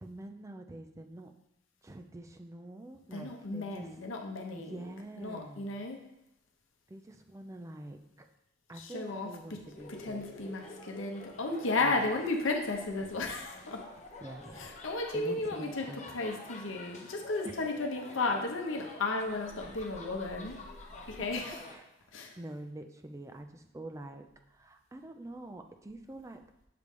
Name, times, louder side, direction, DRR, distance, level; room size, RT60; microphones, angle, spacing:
voice 1, 0.0-1.3 1.8-3.9 4.6-5.8 6.9-8.3 8.7-10.3 11.8-12.0 14.2-16.2 17.4-17.6 21.0-21.1 21.6-22.1 22.4-26.4, right 1 dB, 15° right, 5 dB, 0.4 m, -46 dB
voice 2, 3.1-6.0 8.8-9.6 9.9-13.9 14.6-15.9 16.1-20.6 21.1-21.5 22.1-22.3, left 3 dB, 85° left, 2 dB, 0.8 m, -34 dB
sound 1, 9.6-21.8, left 2 dB, 35° left, 0.8 m, -49 dB
6.7 x 3.2 x 5.1 m, 0.88 s
head